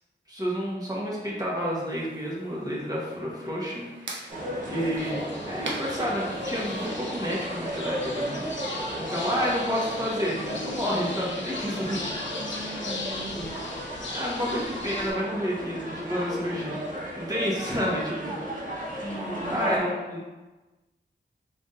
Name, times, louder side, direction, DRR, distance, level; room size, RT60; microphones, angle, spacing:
voice 1, 0.3-12.0 14.1-18.3 18.9-19.1 19.5-20.2, equal, 20° right, -6 dB, 1.3 m, -30 dB
sound 1, 1.8-6.9, right 2 dB, 85° right, 0.6 m, -43 dB
sound 2, 4.3-19.8, equal, 45° right, 1.0 m, -35 dB
sound 3, 5.0-15.1, left 2 dB, 90° left, 0.6 m, -38 dB
voice 2, 12.4-13.6 19.0-20.1, equal, 5° left, -8 dB, 0.9 m, -37 dB
3.7 x 3.7 x 2.6 m, 1.1 s
wide cardioid pair, 60°, 19 cm